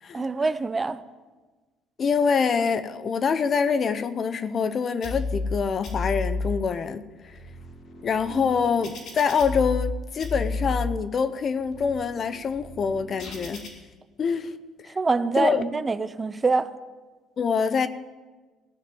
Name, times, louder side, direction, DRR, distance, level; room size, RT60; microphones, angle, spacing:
voice 1, 0.1-1.0 8.4-8.5 15.0-16.7, right 4 dB, 20° right, 0.6 m, -25 dB
voice 2, 2.0-7.4 8.0-13.7 14.2-14.5 15.4-15.6 17.4-17.9, left 6 dB, 40° left, 0.7 m, -25 dB
sound 1, 5.0-5.5 5.8-6.5 7.1-9.9 10.2-10.9 11.5-13.7, left 3 dB, 65° left, 5.1 m, -32 dB
16.5 x 6.6 x 9.3 m
cardioid pair, 125°, 0 cm